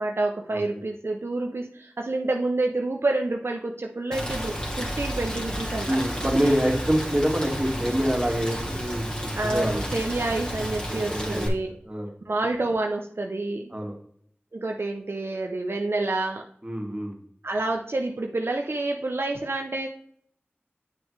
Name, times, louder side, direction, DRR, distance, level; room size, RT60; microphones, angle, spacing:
voice 1, 0.0-5.9 9.4-11.7 12.3-13.8 14.5-16.4 17.4-19.9, right 2 dB, 65° right, 2 dB, 0.7 m, -28 dB
Rain, 4.1-11.5, equal, 15° left, 2.1 m, -32 dB
voice 2, 5.9-9.8 10.9-11.5 11.9-12.1 13.7-13.9 16.6-17.2, equal, 25° right, 1 dB, 2.1 m, -26 dB
8.5 x 6.1 x 3.3 m, 0.64 s
wide cardioid pair, 45°, 4 cm